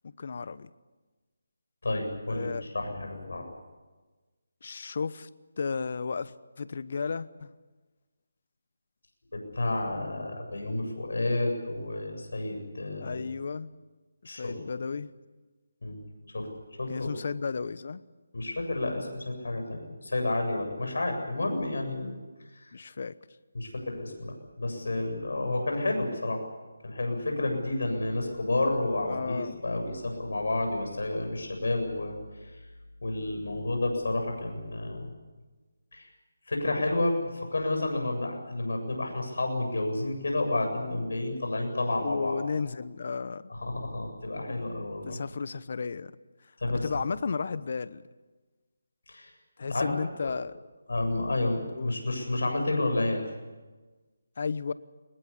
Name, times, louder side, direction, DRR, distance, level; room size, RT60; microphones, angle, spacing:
voice 1, 0.0-0.7 2.3-2.6 4.6-5.3 5.6-7.5 13.0-13.7 14.2-15.1 16.9-18.0 22.7-23.1 29.1-29.6 42.0-43.5 44.5-44.6 45.1-46.1 46.7-48.0 49.6-50.6 51.7-52.0 54.4-54.7, left 5 dB, 55° left, 17 dB, 1.0 m, -33 dB
voice 2, 1.8-3.4 9.3-13.2 14.2-14.6 15.8-16.0 16.3-16.5 16.8-17.3 18.3-22.2 22.5-22.7 23.5-26.4 26.8-32.1 32.4-32.6 33.0-35.1 35.9-36.1 36.5-42.4 43.5-45.2 46.6-46.9 49.1-49.3 49.7-49.9 50.2-50.3 50.9-53.2, left 2 dB, 75° left, 4 dB, 7.8 m, -30 dB
23.5 x 20.5 x 8.5 m, 1.3 s
figure-of-eight pair, 160°, 0 cm